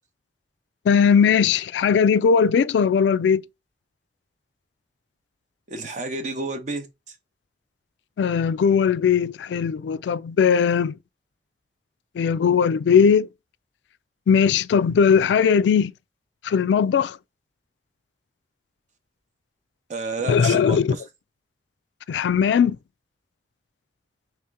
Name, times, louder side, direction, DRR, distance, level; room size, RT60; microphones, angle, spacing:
voice 1, 0.9-3.4 8.2-11.0 12.2-13.3 14.3-15.9 16.4-17.2 20.2-21.0 22.1-22.8, left 6 dB, 80° left, 0.3 m, -19 dB
voice 2, 5.7-6.9 19.9-21.0, right 3 dB, 45° right, 0.8 m, -30 dB
3.1 x 2.8 x 3.4 m
head